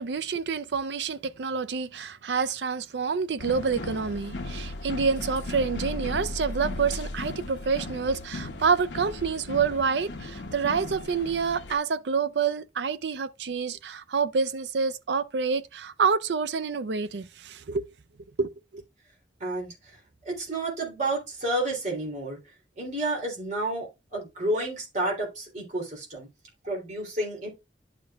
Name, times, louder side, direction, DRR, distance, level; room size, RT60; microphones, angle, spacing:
voice 1, 0.0-17.9 18.4-18.8, right 5 dB, 75° right, 0.5 m, -28 dB
sound 1, 3.4-11.7, left 2 dB, 90° left, 0.9 m, -36 dB
voice 2, 19.4-19.7 20.2-22.4 22.8-26.3 26.6-27.5, right 1 dB, 45° right, 3.2 m, -30 dB
11.5 x 5.2 x 2.4 m
head